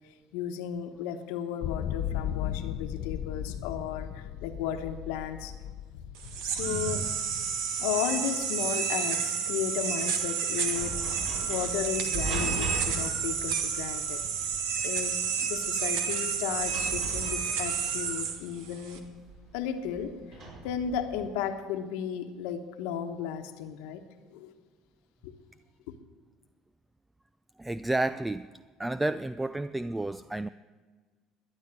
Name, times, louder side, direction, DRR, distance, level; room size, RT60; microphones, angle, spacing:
voice 1, 0.3-5.5 6.2-7.0 7.8-11.0 11.5-14.2 14.8-15.2 15.5-19.0 19.5-20.1 20.6-24.0 24.3-24.5 25.2-25.3, left 9 dB, 85° left, 6 dB, 1.2 m, -34 dB
sound 1, 1.6-7.7, left 10 dB, 60° left, 0.6 m, -36 dB
sound 2, 6.2-19.0, right 6 dB, 80° right, 1.5 m, -30 dB
sound 3, 9.6-21.3, right 2 dB, 55° right, 5.6 m, -40 dB
voice 2, 27.6-28.5 28.8-30.5, right 2 dB, 10° right, 15 dB, 0.3 m, -31 dB
12.5 x 10.0 x 7.6 m, 1.4 s
supercardioid pair, 100°, 0 cm